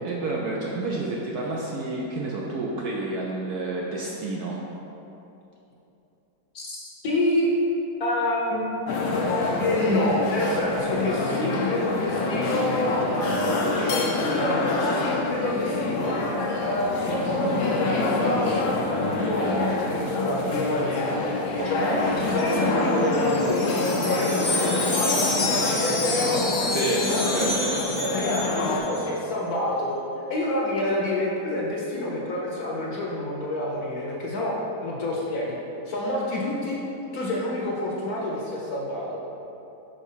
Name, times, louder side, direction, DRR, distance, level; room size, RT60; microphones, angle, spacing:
voice 1, 0.0-4.6 21.6-22.1 26.7-27.8, right 2 dB, 70° right, -3 dB, 1.0 m, -30 dB
voice 2, 6.5-7.5 8.0-9.2 9.6-16.1 16.6-21.9 22.2-28.3 28.6-29.9 30.3-34.5 34.8-35.5 35.9-36.8 37.1-39.2, left 1 dB, 60° left, -3 dB, 1.2 m, -28 dB
sound 1, 8.9-28.8, left 3 dB, 85° left, 1.5 m, -26 dB
Wind chime, 22.9-29.1, left 2 dB, 35° left, 1.0 m, -29 dB
5.2 x 4.5 x 5.6 m, 2.9 s
omnidirectional pair, 2.1 m